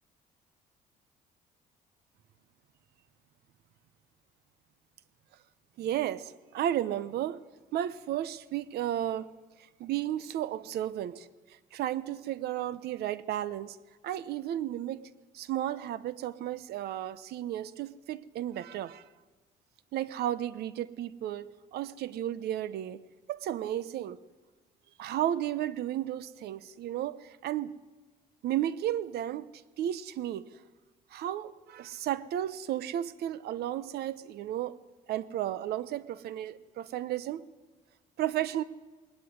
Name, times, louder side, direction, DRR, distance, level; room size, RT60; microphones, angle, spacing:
voice 1, 5.8-7.4 7.7-9.3 9.6-13.8 14.0-15.1 15.3-19.1 19.9-23.0 23.3-24.2 25.0-27.7 28.4-29.5 29.8-30.5 31.1-34.8 35.1-37.5 38.2-38.6, right 12 dB, 70° right, 0.9 m, -33 dB
19.5 x 19.0 x 9.6 m
cardioid pair, 110°, 17 cm